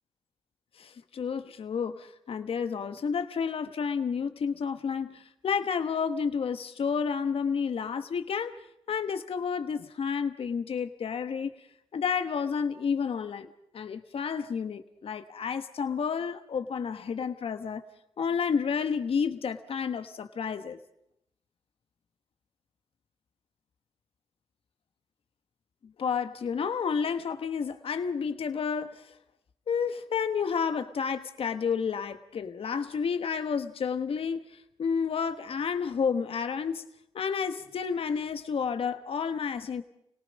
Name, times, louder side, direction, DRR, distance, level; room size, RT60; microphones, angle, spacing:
voice 1, 0.8-8.5 8.9-11.5 11.9-17.8 18.2-20.8 25.8-29.1 29.7-36.9 37.1-39.8, left 6 dB, 70° left, 9 dB, 1.2 m, -30 dB
29.0 x 18.5 x 5.3 m, 0.78 s
cardioid pair, 65°, 10 cm